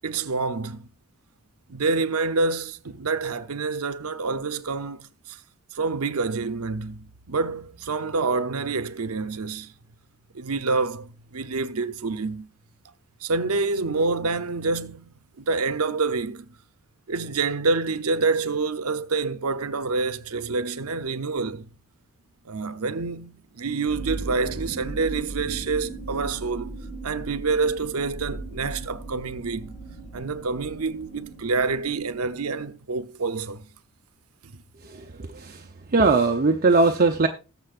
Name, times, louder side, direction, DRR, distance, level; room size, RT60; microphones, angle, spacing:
voice 1, 0.0-0.9 1.7-5.4 5.7-9.7 10.3-12.5 13.2-16.5 17.1-21.7 22.4-26.8 27.0-29.8 30.1-33.7 34.4-34.6, right 4 dB, 80° right, 0.8 m, -27 dB
sound 1, 23.9-32.6, right 3 dB, 35° left, 2.2 m, -37 dB
voice 2, 35.9-37.3, right 3 dB, 40° right, 0.7 m, -19 dB
20.0 x 6.8 x 2.5 m
head